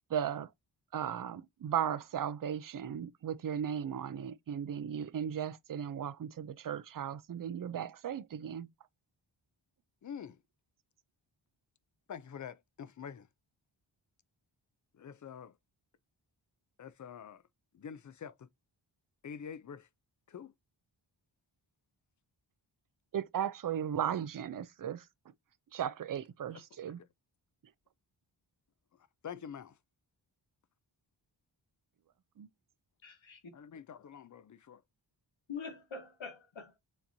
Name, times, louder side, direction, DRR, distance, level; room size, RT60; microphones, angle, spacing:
voice 1, 0.1-0.5 0.9-8.7 23.1-25.1 25.7-27.0 32.4-32.5, right 9 dB, 45° right, 0.5 m, -36 dB
voice 2, 10.0-10.4 12.1-13.3 14.9-15.6 16.8-17.4 17.7-18.5 19.2-19.9 20.3-20.5 26.5-26.7 27.0-27.1 29.2-29.8 33.5-34.8, left 7 dB, 40° left, 0.4 m, -46 dB
voice 3, 33.0-33.5 35.5-36.8, left 5 dB, 75° left, 1.3 m, -44 dB
7.0 x 2.8 x 2.6 m
wide cardioid pair, 115°, 47 cm